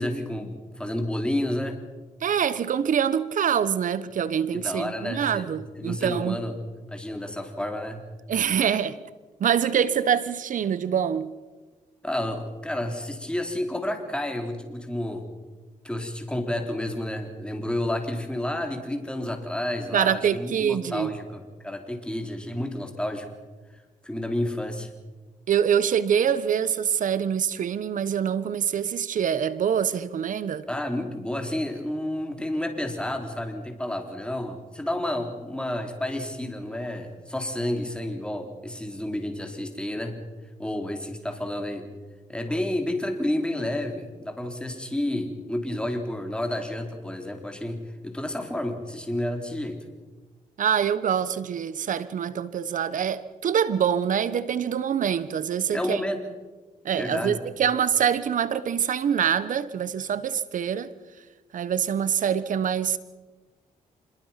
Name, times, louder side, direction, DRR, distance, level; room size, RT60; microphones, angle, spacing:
voice 1, 0.0-1.8 4.5-5.5 5.7-6.6 6.9-8.1 12.0-15.3 15.8-23.3 24.0-24.9 30.7-40.2 40.6-41.9 42.3-49.8 55.7-56.2 56.9-57.4, left 1 dB, 5° left, 4.0 m, -30 dB
voice 2, 2.2-6.4 8.3-9.0 9.4-11.3 19.9-21.1 25.5-30.6 50.6-56.0 56.8-60.9 61.5-63.0, right 8 dB, 70° right, 1.2 m, -25 dB
26.0 x 21.5 x 5.9 m
cardioid pair, 70°, 14 cm